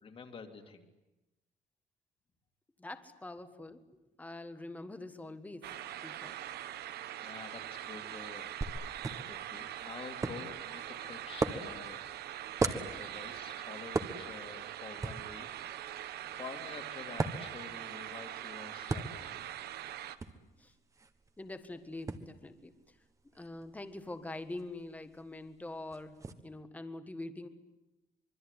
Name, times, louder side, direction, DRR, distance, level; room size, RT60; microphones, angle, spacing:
voice 1, 0.0-0.8 7.2-8.5 8.8-12.0 12.6-15.5 15.7-15.8 16.3-19.5, left 5 dB, 35° left, 5 dB, 2.6 m, -48 dB
voice 2, 2.8-3.8 4.2-5.8 6.0-6.4 20.6-20.7 21.4-22.7 23.3-27.5, left 2 dB, 10° left, 9 dB, 1.5 m, -44 dB
sound 1, 5.6-20.2, right 12 dB, 90° right, 1.2 m, -43 dB
sound 2, 8.6-26.3, right 3 dB, 20° right, 1.3 m, -41 dB
25.5 x 23.5 x 9.8 m, 1.0 s
cardioid pair, 175°, 16 cm